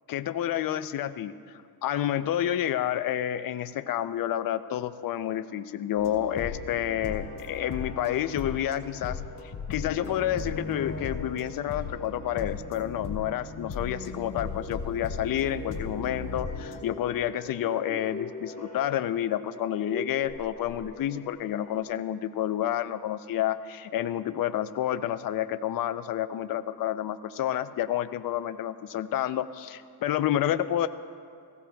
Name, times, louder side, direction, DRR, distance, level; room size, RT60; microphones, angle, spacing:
voice 1, 0.1-9.2 9.7-30.9, left 11 dB, 55° left, 11 dB, 0.5 m, -29 dB
sound 1, 6.0-16.8, left 4 dB, 90° left, 1.5 m, -37 dB
sound 2, 6.0-21.8, left 3 dB, 20° left, 1.1 m, -45 dB
17.0 x 16.0 x 2.3 m, 2.2 s
cardioid pair, 120°, 41 cm